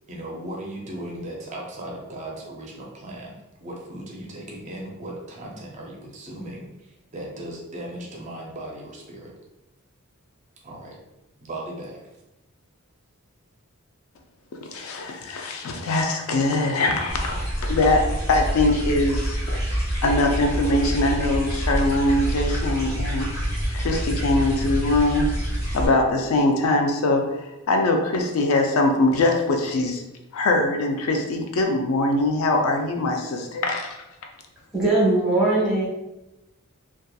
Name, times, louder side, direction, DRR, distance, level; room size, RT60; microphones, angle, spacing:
voice 1, 0.1-9.3 10.6-11.0 11.4-12.0, right 1 dB, 35° right, -2 dB, 0.4 m, -37 dB
voice 2, 14.7-18.0 18.3-19.6 20.0-23.3 23.7-25.3 25.7-30.0 30.3-34.0, left 2 dB, 70° left, 3 dB, 0.4 m, -22 dB
sound 1, 17.1-25.9, equal, 30° left, 1.1 m, -27 dB
voice 3, 34.7-35.9, right 2 dB, 5° right, -7 dB, 0.8 m, -20 dB
2.7 x 2.2 x 2.2 m, 0.95 s
head